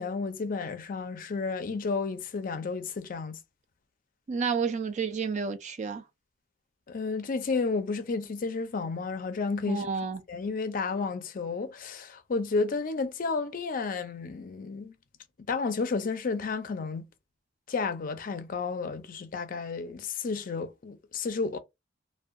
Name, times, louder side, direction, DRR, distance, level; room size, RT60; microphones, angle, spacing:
voice 1, 0.0-3.4 6.9-9.9 10.3-14.9 15.5-17.1 17.7-21.6, left 4 dB, 45° left, 0.4 m, -32 dB
voice 2, 4.3-6.0 9.7-10.2, right 5 dB, 40° right, 0.4 m, -30 dB
2.6 x 2.1 x 2.5 m
head